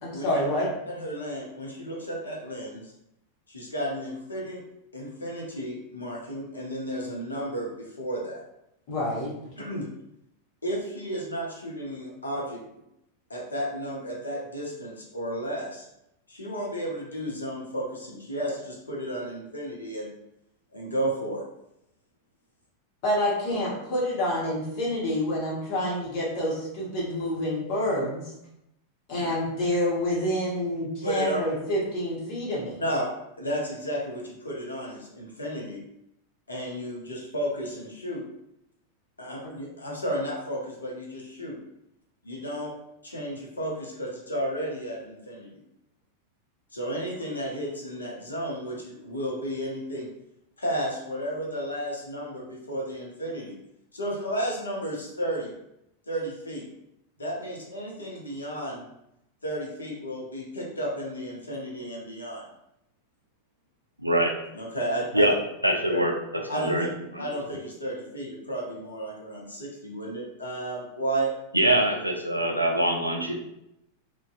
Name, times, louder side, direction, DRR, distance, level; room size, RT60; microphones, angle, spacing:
voice 1, 0.0-0.7 8.9-9.3 23.0-28.3 29.1-32.8 39.4-39.5, left 1 dB, 45° left, -5 dB, 1.0 m, -28 dB
voice 2, 0.9-2.9 3.5-4.6 4.9-8.4 9.6-9.9 10.6-12.6 13.3-15.9 16.3-20.1 20.7-21.4 29.1-29.3 31.0-31.4 32.8-33.1 33.4-35.8 36.5-38.2 39.2-41.6 42.2-42.7 43.0-45.5 46.7-50.1 50.6-53.6 53.9-55.5 56.1-56.6 57.2-58.8 59.4-62.4 64.5-65.3 65.9-66.0 66.5-66.9 67.2-71.3, right 1 dB, 75° left, -2 dB, 0.6 m, -33 dB
voice 3, 64.0-64.3 65.1-65.3 65.6-66.1 66.5-66.9 67.1-67.2 71.5-73.3, right 1 dB, 85° right, 2 dB, 0.3 m, -23 dB
2.5 x 2.2 x 2.3 m, 0.83 s
figure-of-eight pair, 90°, 0 cm